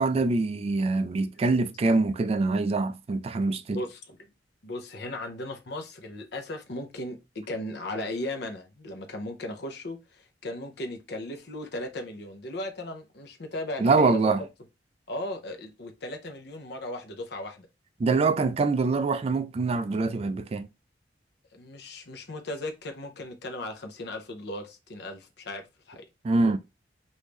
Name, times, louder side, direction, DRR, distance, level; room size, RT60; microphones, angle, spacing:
voice 1, 0.0-3.8 13.8-14.4 18.0-20.7 26.2-26.6, right 3 dB, 35° right, 0.3 m, -24 dB
voice 2, 3.7-4.2 4.6-14.2 15.1-17.7 21.5-26.0, left 1 dB, 65° left, 0.8 m, -37 dB
3.1 x 2.6 x 3.4 m
head